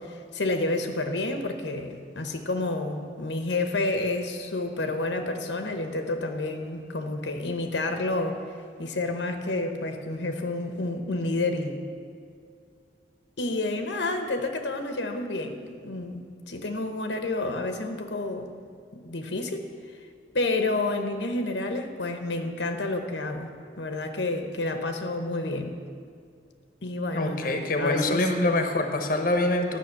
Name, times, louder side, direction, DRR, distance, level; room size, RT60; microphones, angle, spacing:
voice 1, 0.0-8.4 8.8-11.8 13.4-18.6 18.9-19.6 20.3-23.5 23.8-25.8 26.8-28.3, left 2 dB, 85° left, 6 dB, 1.0 m, -29 dB
voice 2, 27.1-29.8, left 2 dB, 50° left, 5 dB, 0.9 m, -25 dB
11.5 x 6.1 x 8.2 m, 2.3 s
head